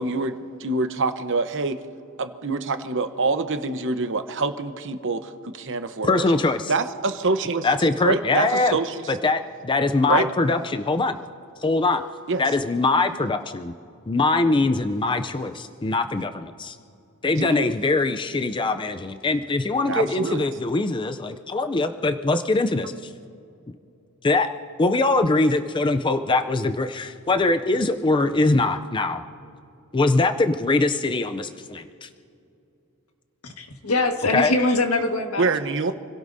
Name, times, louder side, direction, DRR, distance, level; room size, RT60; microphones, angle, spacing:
voice 1, 0.0-1.8 2.2-6.2 6.7-7.7 8.0-9.0 10.1-10.3 12.3-12.4 17.4-17.7 19.9-20.4 35.4-35.9, right 3 dB, 60° right, 9 dB, 0.9 m, -25 dB
voice 2, 6.0-6.7 7.6-8.8 9.1-11.2 11.6-12.0 12.4-13.7 14.1-16.8 17.2-23.1 24.2-24.5 24.8-29.2 29.9-32.1 34.3-34.5, left 3 dB, 20° left, 8 dB, 0.5 m, -22 dB
voice 3, 33.6-35.5, left 2 dB, 75° left, 4 dB, 1.6 m, -23 dB
29.0 x 17.0 x 2.7 m, 2.6 s
head